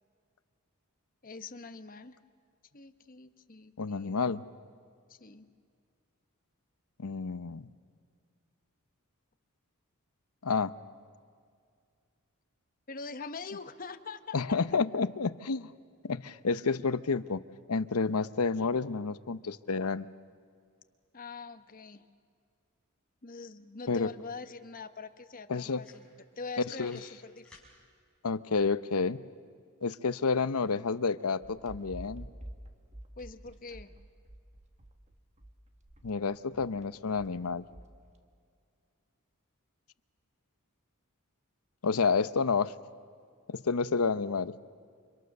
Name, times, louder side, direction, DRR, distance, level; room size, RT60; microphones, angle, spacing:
voice 1, 1.2-2.2 2.7-4.2 5.1-5.5 12.9-14.4 21.1-22.0 23.2-27.5 33.2-33.9, left 4 dB, 40° left, 10 dB, 1.0 m, -44 dB
voice 2, 3.8-4.4 7.0-7.7 10.4-10.7 14.3-15.7 16.0-17.4 17.7-20.1 23.9-24.1 25.5-25.8 26.7-27.0 28.2-29.2 29.8-32.3 36.0-37.6 41.8-42.7 43.5-44.5, left 4 dB, 80° left, 15 dB, 0.8 m, -30 dB
sound 1, 25.3-25.4 25.7-26.4 26.7-27.7, left 3 dB, 5° left, 6.1 m, -56 dB
sound 2, 31.4-38.2, right 1 dB, 30° right, 1.4 m, -49 dB
29.5 x 26.5 x 6.7 m, 2.2 s
head